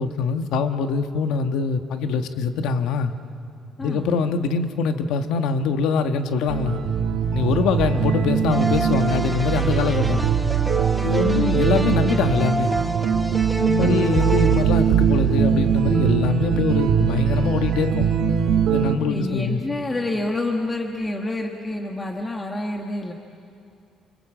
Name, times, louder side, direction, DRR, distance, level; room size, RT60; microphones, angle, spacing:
voice 1, 0.0-3.1 3.8-6.8 7.3-10.2 11.0-12.7 13.6-18.1 18.7-19.6, left 5 dB, 90° left, 7 dB, 1.4 m, -23 dB
sound 1, 6.5-18.9, right 8 dB, 65° right, 2.2 m, -21 dB
sound 2, 8.5-15.5, right 1 dB, 5° right, 1.2 m, -29 dB
voice 2, 13.8-14.1 18.9-23.1, left 2 dB, 15° left, 1 dB, 1.4 m, -28 dB
28.0 x 25.5 x 7.6 m, 2.4 s
cardioid pair, 175°, 0 cm